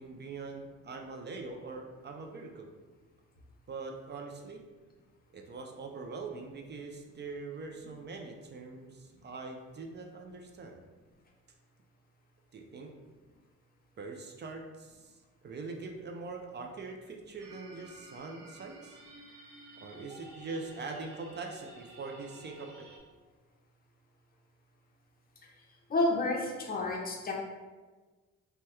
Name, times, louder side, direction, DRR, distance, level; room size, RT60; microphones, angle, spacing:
voice 1, 0.0-2.7 3.7-4.6 5.3-10.8 12.5-12.9 14.0-19.0 19.8-22.9, right 3 dB, 35° right, 2 dB, 0.4 m, -43 dB
sound 1, 17.4-23.0, right 1 dB, 80° right, 0.8 m, -52 dB
voice 2, 25.9-27.3, left 2 dB, 30° left, -1 dB, 0.6 m, -30 dB
2.8 x 2.2 x 3.4 m, 1.3 s
cardioid pair, 90°, 30 cm